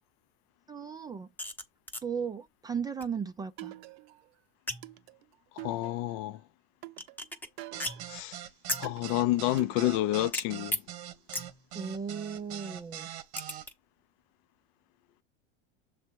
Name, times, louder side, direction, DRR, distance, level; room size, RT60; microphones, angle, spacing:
voice 1, 0.7-1.3 2.0-3.7 11.7-13.1, right 6 dB, 15° right, 0.3 m, -36 dB
sound 1, 1.4-1.6 1.9-2.0 3.0-3.1 4.7-5.0 7.0-7.5 7.8-8.2 8.7-9.0 10.3-10.4 10.7-10.8 11.3-11.6 13.4-13.7, left 1 dB, 5° left, 0.8 m, -35 dB
sound 2, 3.6-4.3 4.8-6.3 6.8-8.2 8.8-10.3, right 18 dB, 75° right, 0.6 m, -46 dB
voice 2, 5.6-6.4 8.1-8.4 8.8-10.8, left 15 dB, 60° left, 0.5 m, -29 dB
sound 3, 7.7-13.6, right 11 dB, 90° right, 1.0 m, -42 dB
7.1 x 3.3 x 4.5 m
supercardioid pair, 130°, 32 cm